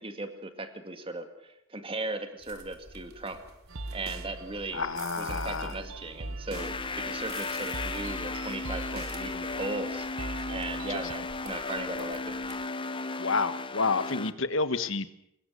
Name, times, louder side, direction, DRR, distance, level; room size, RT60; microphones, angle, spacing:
voice 1, 0.0-3.4 3.9-4.9 5.2-10.1 10.5-12.4, right 2 dB, 25° right, 7 dB, 2.2 m, -37 dB
sound 1, 2.4-12.7, right 4 dB, 50° right, 3.4 m, -52 dB
sound 2, 3.7-11.1, right 2 dB, 85° right, 1.1 m, -41 dB
voice 2, 4.7-5.8 10.9-11.0 13.2-15.1, left 4 dB, 65° left, 12 dB, 1.4 m, -29 dB
sound 3, 6.5-14.3, left 3 dB, 25° left, 0.8 m, -35 dB
24.5 x 21.5 x 6.9 m, 0.78 s
head